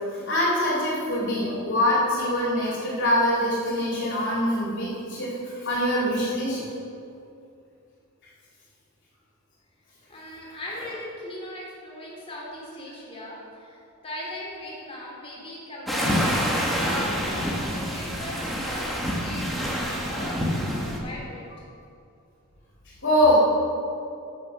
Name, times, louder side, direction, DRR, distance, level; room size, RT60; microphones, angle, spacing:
voice 1, 0.1-6.6 19.8-20.0 23.0-23.4, left 1 dB, 60° left, -6 dB, 3.4 m, -24 dB
voice 2, 10.1-16.3 16.7-19.5 19.8-21.7, left 1 dB, 30° left, -5 dB, 3.6 m, -39 dB
sound 1, 15.9-21.0, equal, ahead, 1.8 m, -27 dB
14.0 x 7.3 x 6.4 m, 2.5 s
head